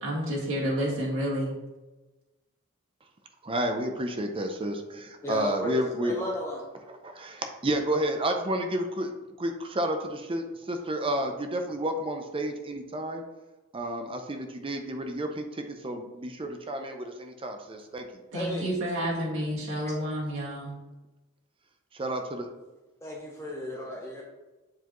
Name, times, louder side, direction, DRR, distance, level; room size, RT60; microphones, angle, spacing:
voice 1, 0.0-1.5 18.3-20.8, equal, 65° right, -6 dB, 1.9 m, -30 dB
voice 2, 3.4-6.1 6.9-9.1 9.4-13.2 13.7-18.1 21.9-22.5, right 1 dB, 25° right, 5 dB, 0.5 m, -31 dB
voice 3, 4.9-6.7 18.3-18.7 19.0-19.4 19.7-19.9 23.0-24.2, left 1 dB, 15° left, -2 dB, 0.7 m, -35 dB
7.9 x 4.8 x 3.0 m, 1.1 s
head